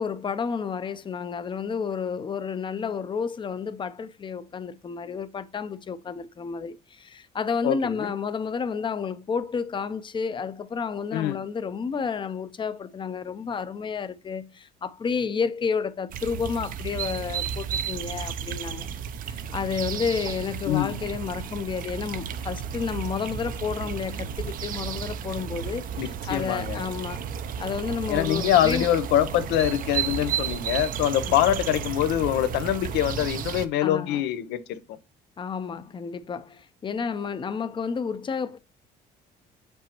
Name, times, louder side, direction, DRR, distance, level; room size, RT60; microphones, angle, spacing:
voice 1, 0.0-18.9 19.2-27.2 27.6-28.9 33.8-34.2 35.4-38.6, left 6 dB, 30° left, 0.6 m, -31 dB
voice 2, 7.6-8.1 11.1-11.4 20.7-21.0 26.0-26.8 28.1-34.8, left 12 dB, 85° left, 0.7 m, -24 dB
sound 1, 16.1-33.7, right 8 dB, 55° right, 0.6 m, -33 dB
6.9 x 5.4 x 3.0 m
cardioid pair, 110°, 17 cm